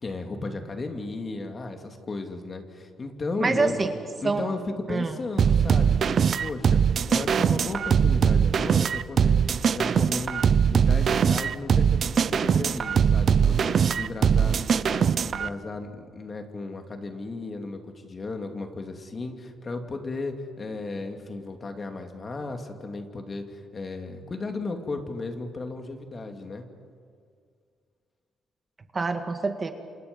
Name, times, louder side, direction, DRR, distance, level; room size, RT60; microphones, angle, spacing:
voice 1, 0.0-3.8 4.2-4.6 4.9-6.8 7.1-9.4 9.7-26.6, left 3 dB, 35° left, 5 dB, 2.8 m, -35 dB
voice 2, 3.4-3.9 4.2-4.5 4.9-5.2 28.9-29.7, right 3 dB, 30° right, 7 dB, 1.9 m, -26 dB
sound 1, 5.4-15.5, right 7 dB, 55° right, 0.6 m, -21 dB
28.0 x 27.0 x 5.5 m, 2.2 s
cardioid pair, 90°, 0 cm